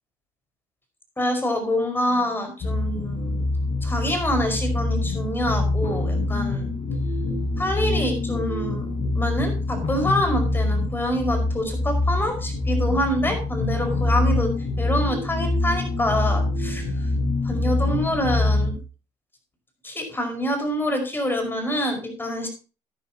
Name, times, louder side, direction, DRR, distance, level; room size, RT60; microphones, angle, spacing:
voice 1, 1.2-3.4 3.8-6.7 7.6-8.9 9.1-14.5 14.8-17.1 17.4-18.8 19.8-22.5, equal, 15° left, 5 dB, 5.2 m, -26 dB
sound 1, 2.6-18.7, left 2 dB, 50° left, 4.2 m, -25 dB
14.0 x 9.7 x 2.9 m, 0.34 s
supercardioid pair, 85°, 12 cm